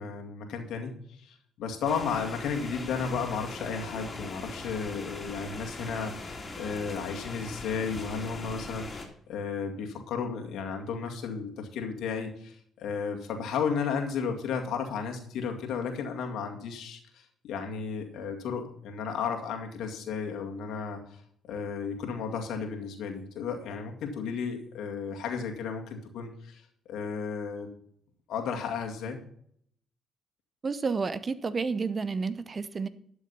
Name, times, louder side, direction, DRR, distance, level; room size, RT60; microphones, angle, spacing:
voice 1, 0.0-17.0 17.4-21.0 21.4-26.6 26.9-27.7 28.3-29.2, left 6 dB, 65° left, 3 dB, 2.2 m, -33 dB
sound 1, 1.8-9.1, left 3 dB, 35° left, 2.9 m, -40 dB
voice 2, 30.6-32.9, right 4 dB, 40° right, 15 dB, 0.9 m, -30 dB
12.0 x 7.0 x 5.6 m, 0.65 s
hypercardioid pair, 50°, 0 cm